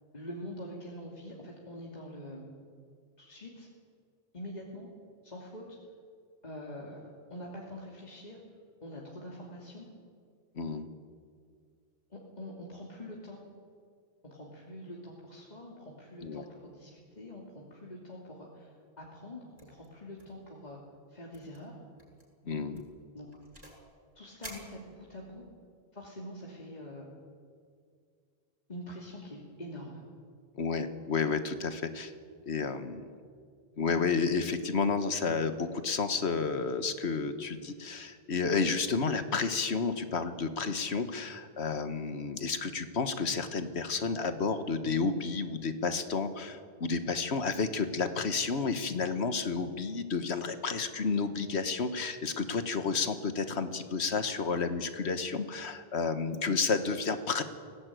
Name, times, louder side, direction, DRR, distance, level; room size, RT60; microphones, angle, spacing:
voice 1, 0.1-2.5 3.2-3.7 4.3-4.9 5.2-5.8 6.4-7.0 7.3-9.9 12.1-13.4 14.3-20.8 21.1-21.8 23.1-23.3 24.1-25.4 25.9-27.1 28.7-30.0, left 1 dB, 40° left, -3 dB, 2.9 m, -45 dB
voice 2, 10.5-10.9 16.2-16.4 22.4-22.8 30.6-32.1 32.5-33.1 33.8-57.4, left 4 dB, 90° left, 10 dB, 1.6 m, -31 dB
sound 1, 19.6-19.9 20.2-20.4 20.7-20.8 21.3-21.6 22.0-22.2 22.7-23.9 24.4-25.4, equal, 20° right, 6.8 m, -50 dB
20.5 x 17.5 x 9.2 m, 2.1 s
omnidirectional pair, 1.1 m